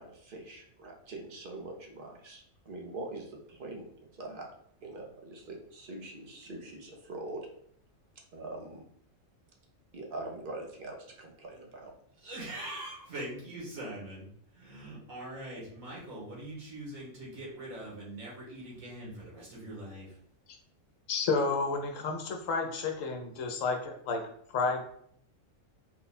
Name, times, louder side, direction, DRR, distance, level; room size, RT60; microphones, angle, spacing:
voice 1, 0.0-3.8 4.1-4.5 4.8-7.5 8.3-8.8 9.9-11.9, right 2 dB, 45° right, 1 dB, 0.9 m, -43 dB
voice 2, 12.2-14.3 14.5-20.2, right 1 dB, 85° right, -4 dB, 2.0 m, -42 dB
voice 3, 21.1-24.2 24.5-24.8, left 4 dB, 75° left, 4 dB, 1.1 m, -31 dB
4.3 x 2.2 x 4.1 m, 0.67 s
omnidirectional pair, 1.4 m